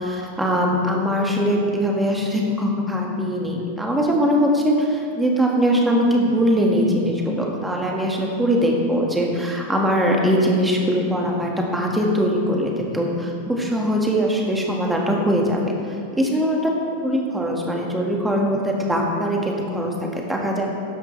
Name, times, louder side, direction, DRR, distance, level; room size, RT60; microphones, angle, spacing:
voice 1, 0.0-15.6 15.9-16.6 17.0-20.7, equal, 5° right, -1 dB, 2.0 m, -21 dB
14.5 x 10.5 x 3.4 m, 2.4 s
figure-of-eight pair, 90°, 0 cm